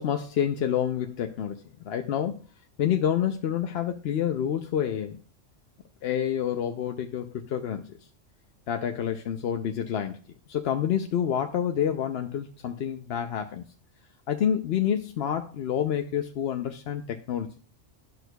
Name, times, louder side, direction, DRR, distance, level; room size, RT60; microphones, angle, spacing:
voice 1, 0.0-2.4 2.8-5.2 6.0-7.9 8.7-10.2 10.5-13.6 14.3-17.6, left 9 dB, 60° left, 6 dB, 0.8 m, -28 dB
12.0 x 6.2 x 2.2 m, 0.41 s
omnidirectional pair, 1.3 m